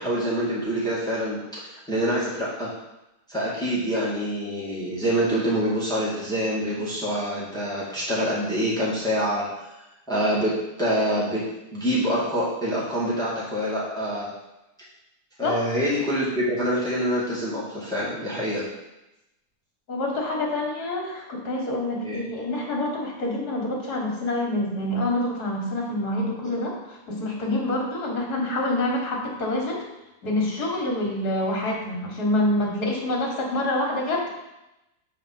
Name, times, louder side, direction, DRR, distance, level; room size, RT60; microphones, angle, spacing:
voice 1, 0.0-1.4 1.9-2.7 3.3-9.7 10.1-10.5 10.8-11.4 11.7-14.3 15.4-18.6 22.0-22.2, equal, ahead, -7 dB, 1.9 m, -26 dB
voice 2, 19.9-29.8 30.2-34.3, left 1 dB, 65° left, -1 dB, 2.0 m, -26 dB
7.5 x 4.1 x 5.7 m, 0.93 s
omnidirectional pair, 1.8 m